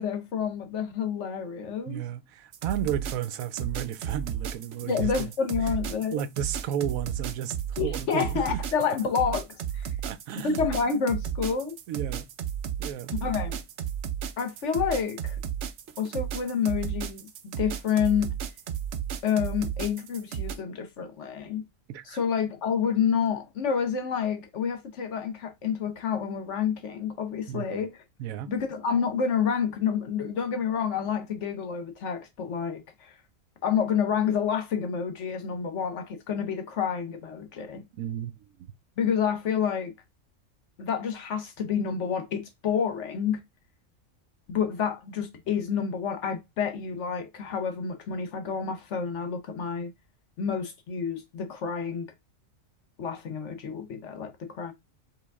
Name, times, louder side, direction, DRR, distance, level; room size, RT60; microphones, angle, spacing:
voice 1, 0.0-2.0 4.9-6.2 7.8-9.5 9.7-9.9 10.4-11.7 13.1-13.6 14.4-15.4 16.0-17.3 17.6-18.3 19.2-21.6 22.1-27.9 28.5-32.8 33.6-37.8 39.0-39.9 40.8-43.4 44.5-49.9 50.4-52.0 53.0-54.7, left 7 dB, 60° left, 1.1 m, -28 dB
voice 2, 1.9-5.3 6.1-8.6 10.0-10.7 11.9-12.3 12.8-13.1 21.9-22.2 27.5-27.7 28.2-28.5 38.0-38.3, right 10 dB, 90° right, 1.0 m, -33 dB
sound 1, 2.5-20.5, right 9 dB, 65° right, 0.8 m, -33 dB
5.0 x 2.6 x 3.5 m
omnidirectional pair, 1.4 m